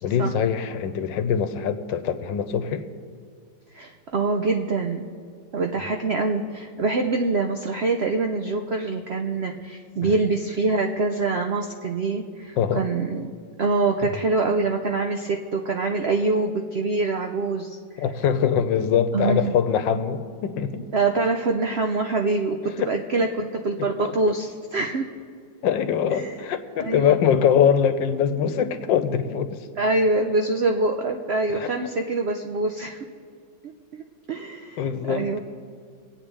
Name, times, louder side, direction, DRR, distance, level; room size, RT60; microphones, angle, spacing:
voice 1, 0.0-2.8 10.0-10.2 12.6-12.8 14.0-14.2 18.0-20.9 22.8-22.9 23.2-23.3 23.8-24.4 25.6-29.6 31.5-31.7 34.8-35.4, left 8 dB, 80° left, 10 dB, 1.5 m, -23 dB
voice 2, 3.7-5.1 5.5-13.3 13.6-18.0 19.1-19.5 20.9-25.1 26.1-26.3 26.8-27.2 29.8-33.0 33.9-34.0 34.3-35.4, right 3 dB, 85° right, 3 dB, 0.5 m, -25 dB
24.5 x 8.7 x 3.4 m, 2.2 s
omnidirectional pair, 2.0 m